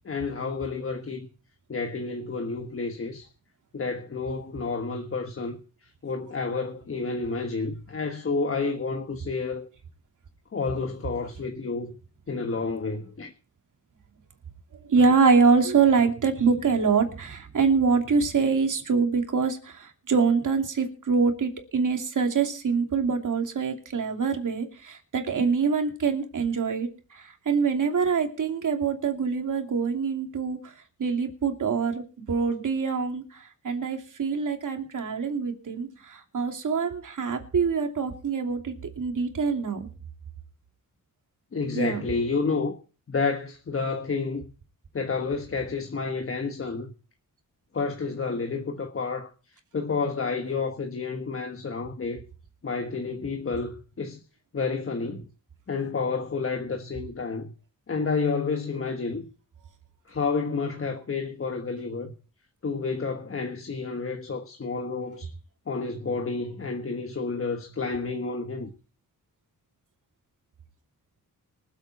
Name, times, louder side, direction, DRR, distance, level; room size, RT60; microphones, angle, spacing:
voice 1, 0.0-1.3 1.7-3.3 3.7-5.6 6.0-9.7 10.5-12.0 12.3-13.3 41.5-42.7 43.1-44.5 44.9-46.9 47.7-49.3 49.7-52.2 52.6-54.2 54.5-55.2 55.7-57.5 57.9-59.3 60.1-62.1 62.6-65.3 65.7-68.7, left 4 dB, 40° left, 1.4 m, -30 dB
voice 2, 14.7-30.7 31.0-33.2 33.6-39.9 41.7-42.0, right 5 dB, 60° right, 2.8 m, -25 dB
25.0 x 8.3 x 4.3 m
wide cardioid pair, 140°, 34 cm